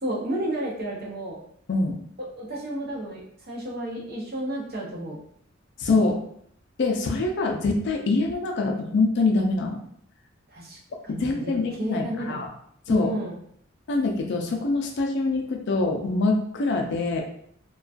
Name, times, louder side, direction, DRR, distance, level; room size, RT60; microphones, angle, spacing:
voice 1, 0.0-1.4 2.4-5.2 10.5-10.8 11.0-12.4 12.9-13.4, right 1 dB, 50° right, -4 dB, 0.7 m, -32 dB
voice 2, 5.8-6.2 6.8-9.8 11.1-12.5 12.9-13.1 13.9-17.2, left 3 dB, 60° left, 2 dB, 0.4 m, -24 dB
2.3 x 2.2 x 2.4 m, 0.64 s
head